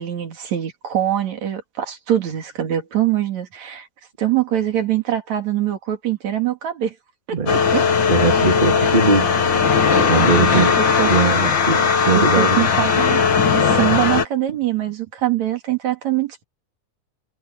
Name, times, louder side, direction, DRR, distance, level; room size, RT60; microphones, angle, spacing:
voice 1, 0.0-3.9 4.2-6.9 7.3-7.8 10.4-10.7 11.0-11.1 12.1-13.2 13.6-16.4, right 12 dB, 65° right, 3.5 m, -23 dB
sound 1, 7.5-14.2, left 5 dB, 40° left, 2.3 m, -17 dB
voice 2, 8.1-9.6 9.9-10.7 11.1-12.7, right 4 dB, 20° right, 1.8 m, -20 dB
omnidirectional pair, 3.5 m